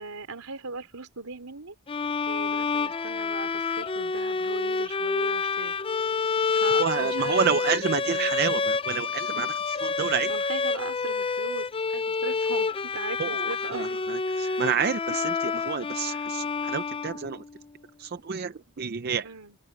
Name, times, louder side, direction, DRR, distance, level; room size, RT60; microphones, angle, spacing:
voice 1, 0.0-1.7 2.3-5.8 6.5-8.3 10.3-14.0 14.3-14.6 16.1-16.3 19.2-19.6, right 3 dB, 80° right, 3.8 m, -39 dB
sound 1, 1.9-17.5, left 4 dB, 25° left, 0.5 m, -28 dB
voice 2, 6.8-10.3 13.2-17.4 18.0-19.3, right 6 dB, 45° right, 0.6 m, -29 dB
open air
head